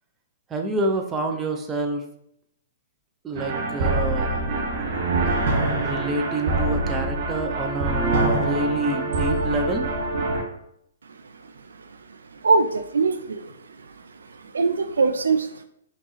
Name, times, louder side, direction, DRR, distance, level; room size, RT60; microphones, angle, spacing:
voice 1, 0.5-2.0 3.2-4.6 5.8-9.9, right 2 dB, 15° right, 4 dB, 0.6 m, -27 dB
sound 1, 3.3-10.4, right 2 dB, 45° right, 1.0 m, -24 dB
voice 2, 12.4-13.5 14.5-15.6, right 4 dB, 70° right, 8 dB, 0.4 m, -21 dB
5.2 x 2.9 x 3.1 m, 0.75 s
figure-of-eight pair, 120°, 0 cm